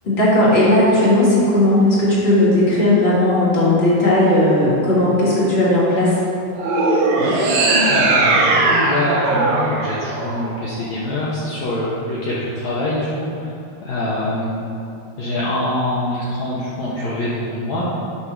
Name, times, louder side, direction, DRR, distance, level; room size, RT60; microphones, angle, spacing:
voice 1, 0.0-6.2, left 1 dB, 35° left, -8 dB, 1.0 m, -16 dB
sound 1, 6.5-10.9, right 2 dB, 90° right, 1.5 m, -18 dB
voice 2, 7.9-13.5 13.8-14.7 15.2-17.9, left 1 dB, 70° left, -8 dB, 1.8 m, -24 dB
9.7 x 4.3 x 6.1 m, 2.6 s
omnidirectional pair, 4.6 m